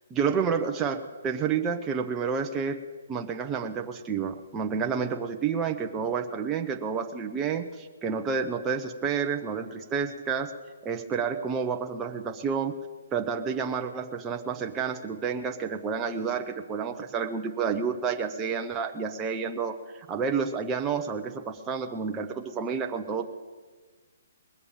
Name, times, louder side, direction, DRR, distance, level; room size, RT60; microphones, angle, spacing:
voice 1, 0.1-2.8 3.1-10.5 10.8-12.7 13.1-23.3, right 6 dB, 15° right, 3 dB, 0.8 m, -30 dB
20.5 x 6.9 x 7.2 m, 1.4 s
hypercardioid pair, 145°, 0 cm